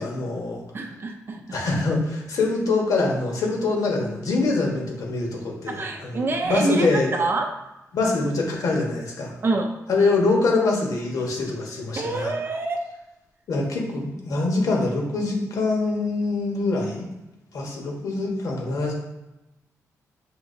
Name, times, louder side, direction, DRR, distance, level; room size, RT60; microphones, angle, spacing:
voice 1, 0.0-0.6 1.5-7.1 7.9-9.4 9.9-12.3 13.5-17.1 17.5-18.9, left 3 dB, 75° left, -1 dB, 1.2 m, -24 dB
voice 2, 0.7-1.4 5.7-7.5 9.4-9.7 12.0-12.9, right 3 dB, 40° right, 4 dB, 0.5 m, -26 dB
6.0 x 2.8 x 2.6 m, 0.97 s
cardioid pair, 105°, 6 cm